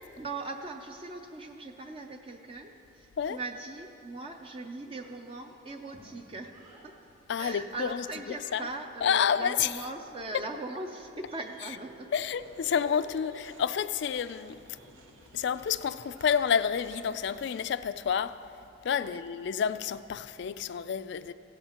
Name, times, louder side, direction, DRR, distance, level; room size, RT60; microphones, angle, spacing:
voice 1, 0.1-6.5 6.8-6.9 7.4-12.1 19.0-19.2, right 2 dB, 25° right, 0.4 m, -40 dB
Child speech kid speaking, 4.9-6.9 7.8-9.0 10.2-11.4 11.7-13.5 16.0-16.9, right 1 dB, 70° right, 3.3 m, -55 dB
voice 2, 7.3-8.0 8.5-8.6 9.0-9.7 12.1-14.6 15.3-18.4 18.8-21.3, left 7 dB, 60° left, 0.3 m, -29 dB
sound 1, 11.3-17.7, right 2 dB, 85° right, 1.2 m, -57 dB
16.5 x 13.5 x 2.9 m
head